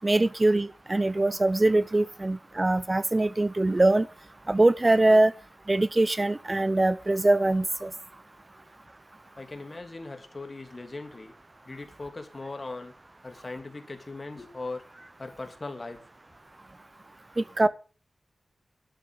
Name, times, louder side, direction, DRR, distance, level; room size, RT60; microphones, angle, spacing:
voice 1, 0.0-4.1 4.5-5.3 5.7-7.9 17.4-17.7, right 2 dB, 30° right, 0.5 m, -23 dB
voice 2, 9.4-11.3 11.6-13.0 13.2-14.9 15.2-16.0, left 3 dB, 35° left, 2.8 m, -39 dB
11.5 x 7.7 x 7.4 m
cardioid pair, 65°, 0 cm